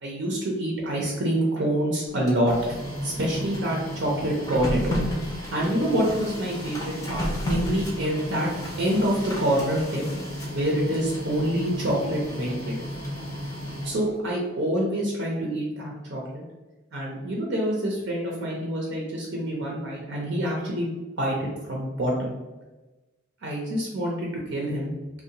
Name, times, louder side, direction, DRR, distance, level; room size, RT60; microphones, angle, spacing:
voice 1, 0.0-2.5 3.0-5.0 5.5-12.8 13.8-16.4 16.9-22.4 23.4-24.9, right 1 dB, 75° right, -2 dB, 0.5 m, -27 dB
Printer, 2.1-14.2, equal, 15° left, 0.4 m, -32 dB
2.6 x 2.1 x 2.7 m, 1.1 s
head